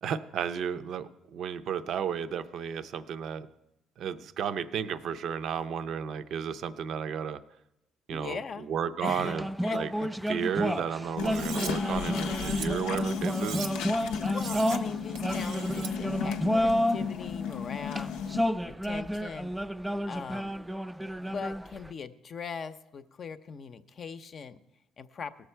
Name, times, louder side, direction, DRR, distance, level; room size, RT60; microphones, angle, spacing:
voice 1, 0.0-3.5 4.0-7.4 8.1-8.4 8.7-9.5 9.7-9.9 10.3-13.6, right 7 dB, 65° right, 11 dB, 0.5 m, -33 dB
voice 2, 8.1-8.7 9.0-9.4 9.6-10.1 14.3-18.1 18.6-19.5 20.1-20.6 21.2-24.6 25.0-25.3, left 6 dB, 50° left, 11 dB, 0.6 m, -40 dB
sound 1, 9.0-17.1 17.8-21.9, equal, 5° right, 0.3 m, -31 dB
sound 2, 11.2-18.4, left 7 dB, 90° left, 0.6 m, -34 dB
Cutlery silverware, 11.3-11.7 12.2-12.7 13.2-13.7 14.2-14.8 15.2-15.9, right 7 dB, 85° right, 0.9 m, -40 dB
18.0 x 6.7 x 4.5 m, 0.89 s
supercardioid pair, 80°, 0 cm